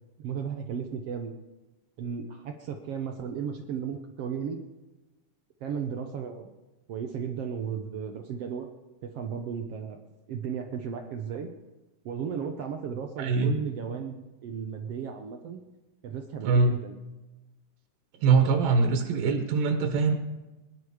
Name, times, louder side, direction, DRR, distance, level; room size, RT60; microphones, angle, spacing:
voice 1, 0.2-1.3 2.0-4.6 5.6-6.5 6.9-8.7 9.0-10.0 10.3-11.5 12.0-15.6 16.0-16.9, right 7 dB, 70° right, 4 dB, 1.5 m, -35 dB
voice 2, 13.2-13.6 16.4-16.7 18.2-20.1, right 4 dB, 85° right, 5 dB, 3.1 m, -23 dB
24.5 x 10.0 x 5.0 m, 1.1 s
omnidirectional pair, 3.9 m